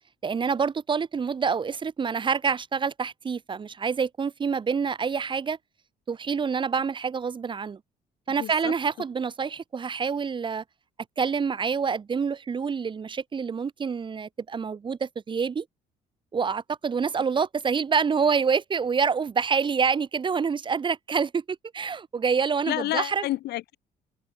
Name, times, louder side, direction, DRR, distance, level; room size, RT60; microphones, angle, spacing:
voice 1, 0.2-5.6 6.1-7.8 8.3-10.6 11.2-15.7 16.3-23.3, right 6 dB, 30° right, 0.9 m, -27 dB
voice 2, 8.4-8.7 22.7-23.8, left 16 dB, 75° left, 2.2 m, -29 dB
cardioid pair, 110°, 17 cm